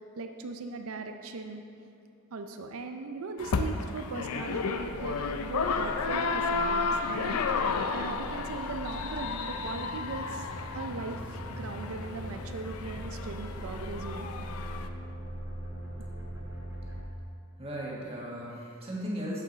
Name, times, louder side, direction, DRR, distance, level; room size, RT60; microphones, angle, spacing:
voice 1, 0.0-1.6 2.3-10.5 10.7-14.3, right 3 dB, 65° right, 6 dB, 0.5 m, -39 dB
sound 1, 3.4-14.9, left 4 dB, 85° left, 0.5 m, -33 dB
sound 2, 4.5-17.0, equal, 10° right, 2.1 m, -41 dB
voice 2, 17.6-19.4, equal, 25° right, -5 dB, 1.5 m, -36 dB
7.5 x 7.3 x 4.0 m, 2.4 s
head